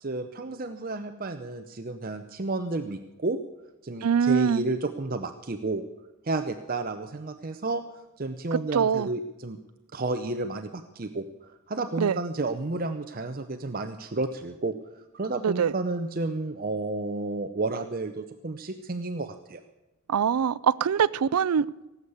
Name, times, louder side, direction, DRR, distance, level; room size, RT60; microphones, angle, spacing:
voice 1, 0.0-3.4 3.8-5.8 6.2-7.8 8.2-9.6 9.9-19.6, right 2 dB, 40° right, 7 dB, 0.7 m, -31 dB
voice 2, 4.0-4.6 8.7-9.1 12.0-12.2 15.4-15.7 20.1-21.7, right 7 dB, 85° right, 21 dB, 0.4 m, -23 dB
17.5 x 8.1 x 8.2 m, 1.1 s
head